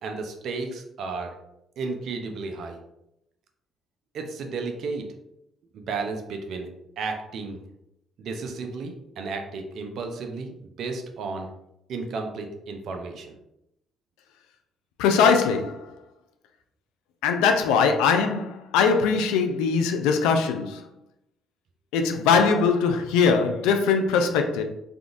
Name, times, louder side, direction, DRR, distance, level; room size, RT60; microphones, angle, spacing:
voice 1, 0.0-1.3 1.8-2.8 4.1-5.1 5.7-6.7 7.0-7.6 8.2-11.5 11.9-13.3, right 4 dB, 70° right, 0.5 m, -33 dB
voice 2, 15.0-15.8 17.2-20.8 21.9-24.6, left 5 dB, 90° left, 0.3 m, -21 dB
3.5 x 2.3 x 2.5 m
supercardioid pair, 65°, 0 cm